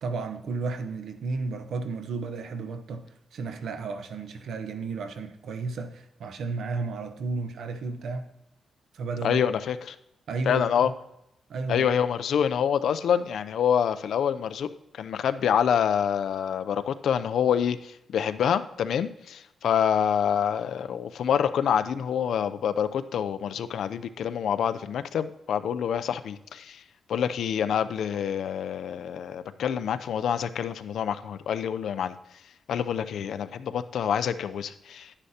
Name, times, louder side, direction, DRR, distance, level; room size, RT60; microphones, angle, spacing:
voice 1, 0.0-3.0 3.3-8.3 8.9-9.4 10.3-10.9 11.5-11.9, right 4 dB, 75° right, 0.8 m, -33 dB
voice 2, 9.2-10.0 10.5-10.9 11.7-14.7 14.9-26.8 27.1-32.1 32.7-35.1, left 8 dB, 75° left, 0.4 m, -26 dB
11.0 x 9.9 x 2.8 m
wide cardioid pair, 150°, 0 cm